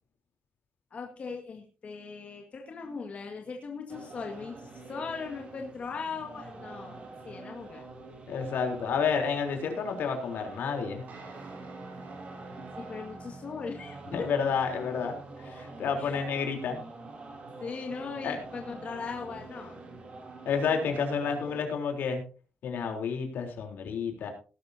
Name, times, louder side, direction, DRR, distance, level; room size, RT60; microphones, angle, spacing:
voice 1, 0.9-7.0 7.2-7.8 12.8-14.3 16.0-16.3 17.6-19.8, left 5 dB, 40° left, 2 dB, 1.9 m, -39 dB
sound 1, 3.9-21.6, right 3 dB, 35° right, 3.1 m, -46 dB
voice 2, 8.3-11.0 14.1-16.8 18.2-18.4 20.5-22.2 22.6-24.3, left 6 dB, 75° left, 3 dB, 3.8 m, -30 dB
sound 2, 11.1-16.2, right 2 dB, 55° right, 6.5 m, -48 dB
18.5 x 12.0 x 2.8 m, 0.36 s
wide cardioid pair, 170°, 3 cm